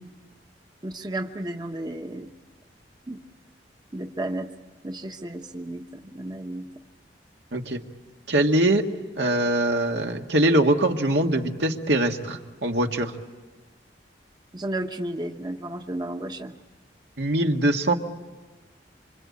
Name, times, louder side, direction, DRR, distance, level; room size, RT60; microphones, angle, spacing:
voice 1, 0.8-2.3 3.1-3.2 3.9-4.5 4.8-6.7 14.5-16.5, right 1 dB, 25° right, 5 dB, 1.0 m, -33 dB
voice 2, 8.3-8.9 9.2-13.1 17.2-17.9, right 1 dB, 80° right, 3 dB, 1.8 m, -22 dB
26.5 x 26.0 x 8.6 m, 1.3 s
head